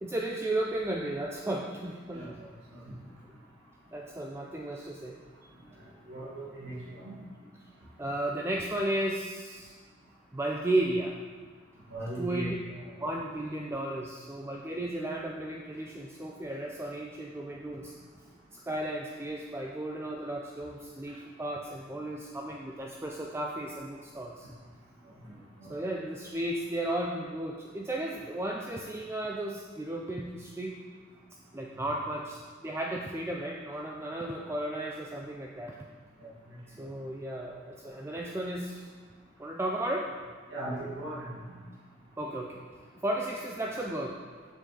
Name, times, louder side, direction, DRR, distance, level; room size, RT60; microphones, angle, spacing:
voice 1, 0.0-2.3 3.9-5.1 8.0-9.8 10.3-11.2 12.2-12.5 13.0-17.9 18.5-24.5 25.7-30.8 31.5-35.7 36.8-38.9 39.4-40.1 42.2-42.6 43.0-44.2, right 1 dB, 15° right, -1 dB, 0.4 m, -34 dB
voice 2, 6.1-7.2 11.9-12.5 25.3-25.8 36.5-36.6 40.5-41.3, right 1 dB, 70° right, -7 dB, 1.7 m, -38 dB
7.4 x 6.5 x 3.8 m, 1.5 s
head